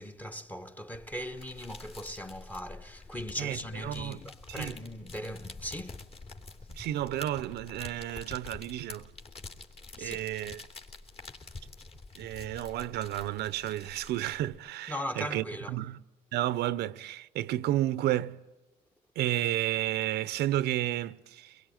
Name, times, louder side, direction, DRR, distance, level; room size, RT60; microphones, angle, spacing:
voice 1, 0.0-6.0 10.0-10.2 14.9-15.8, equal, 10° left, 1.2 m, -39 dB
sound 1, 0.9-14.6, left 3 dB, 35° left, 3.0 m, -47 dB
voice 2, 3.4-4.2 4.5-4.8 6.7-9.1 10.0-10.6 12.2-16.0 16.3-18.4 19.2-21.6, right 14 dB, 75° right, 0.8 m, -32 dB
24.0 x 21.5 x 9.3 m
cardioid pair, 110°, 17 cm